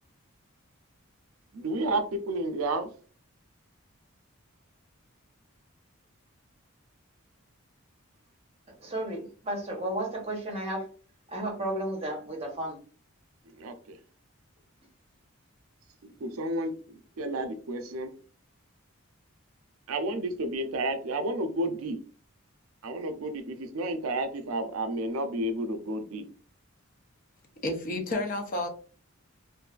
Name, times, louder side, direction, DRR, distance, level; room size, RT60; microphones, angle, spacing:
voice 1, 1.5-2.9 13.6-14.0 16.0-18.1 19.9-22.0 22.8-26.3, right 1 dB, 80° right, 0.4 m, -31 dB
voice 2, 8.8-10.9 11.3-12.8, right 1 dB, 30° right, 0.7 m, -33 dB
voice 3, 27.6-28.7, left 2 dB, 40° left, 0.5 m, -30 dB
2.6 x 2.3 x 2.3 m
head